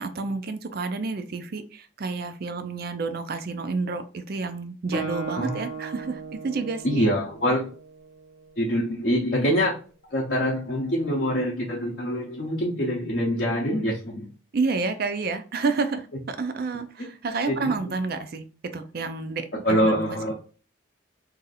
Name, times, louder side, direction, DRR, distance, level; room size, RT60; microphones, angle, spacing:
voice 1, 0.0-7.1 14.5-18.5 18.7-20.3, right 4 dB, 50° right, 9 dB, 0.4 m, -30 dB
Guitar, 4.9-8.6, right 4 dB, 80° right, 1.3 m, -36 dB
voice 2, 6.8-7.7 8.6-9.7 10.1-14.3 17.5-17.7 19.6-20.3, equal, 45° left, -2 dB, 0.6 m, -24 dB
2.7 x 2.4 x 4.0 m, 0.37 s
head